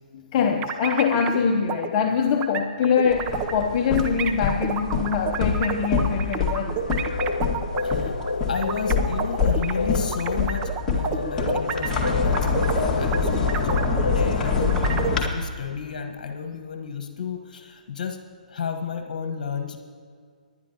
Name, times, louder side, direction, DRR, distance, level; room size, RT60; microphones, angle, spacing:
voice 1, 0.1-6.8, left 6 dB, 35° left, 3 dB, 0.8 m, -23 dB
sound 1, 0.6-1.4 1.7-1.9 2.4-3.7 4.0-9.7 10.1-14.3 14.6-15.3, right 7 dB, 25° right, 0.8 m, -30 dB
sound 2, 3.1-15.2, left 5 dB, 15° left, 2.0 m, -26 dB
sound 3, 6.7-15.2, left 3 dB, 85° left, 0.4 m, -30 dB
voice 2, 7.8-8.2 8.4-18.2 18.5-19.8, left 6 dB, 55° left, 5 dB, 1.3 m, -32 dB
25.0 x 11.0 x 3.0 m, 2.1 s
figure-of-eight pair, 130°, 5 cm